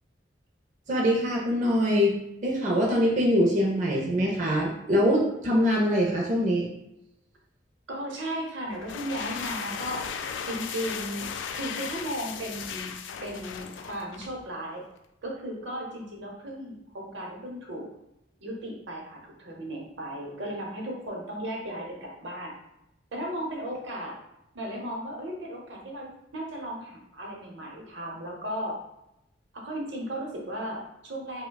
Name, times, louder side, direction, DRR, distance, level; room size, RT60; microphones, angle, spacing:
voice 1, 0.9-6.7, equal, 40° right, -2 dB, 0.5 m, -24 dB
voice 2, 7.9-10.0 10.4-12.9 13.2-14.8 15.2-17.9 18.4-22.5 23.1-24.2 24.5-26.1 26.3-28.8 29.5-31.5, equal, 80° right, -1 dB, 0.8 m, -35 dB
sound 1, 8.7-14.4, left 7 dB, 85° left, 0.3 m, -36 dB
4.8 x 2.2 x 2.2 m, 0.86 s
head